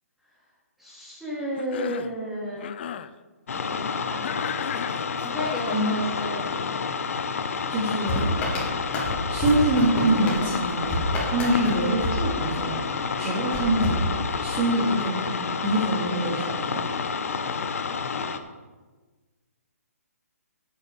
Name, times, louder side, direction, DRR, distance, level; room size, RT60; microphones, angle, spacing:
voice 1, 0.8-2.8 3.5-4.4 5.2-6.7, equal, ahead, -7 dB, 3.3 m, -33 dB
Cough, 1.6-2.2 2.6-3.1 4.2-5.8, left 9 dB, 40° left, 0.5 m, -35 dB
sound 1, 3.5-18.4, left 5 dB, 65° left, 1.0 m, -29 dB
voice 2, 7.7-8.2 9.3-11.0 11.3-12.9 13.2-14.0 14.4-16.8, right 1 dB, 25° right, -7 dB, 2.6 m, -25 dB
sound 2, 8.1-12.9 13.5-14.7, left 1 dB, 20° left, 3.6 m, -29 dB
9.0 x 7.8 x 7.2 m, 1.3 s
hypercardioid pair, 150°, 8 cm